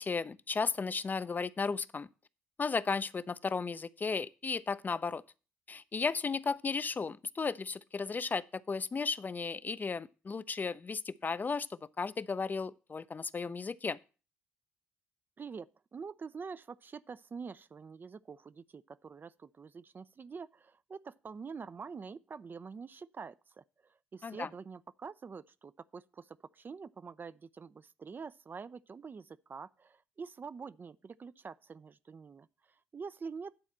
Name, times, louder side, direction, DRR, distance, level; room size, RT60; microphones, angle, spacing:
voice 1, 0.0-2.1 2.6-5.2 5.7-14.0 24.2-24.5, left 4 dB, 30° left, 0.4 m, -34 dB
voice 2, 15.4-33.6, right 5 dB, 35° right, 0.4 m, -46 dB
9.6 x 4.2 x 7.3 m
hypercardioid pair, 45°, 6 cm